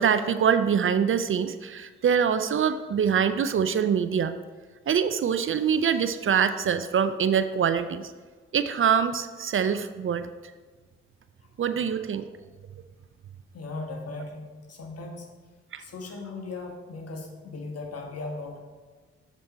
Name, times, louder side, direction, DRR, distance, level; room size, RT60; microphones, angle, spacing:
voice 1, 0.0-4.4 4.9-8.1 8.5-10.3 11.6-12.3 15.7-15.8, right 7 dB, 45° right, 11 dB, 0.5 m, -24 dB
voice 2, 13.5-15.3 15.8-18.6, left 3 dB, 55° left, 2 dB, 1.5 m, -38 dB
7.2 x 5.1 x 4.2 m, 1.4 s
supercardioid pair, 45°, 29 cm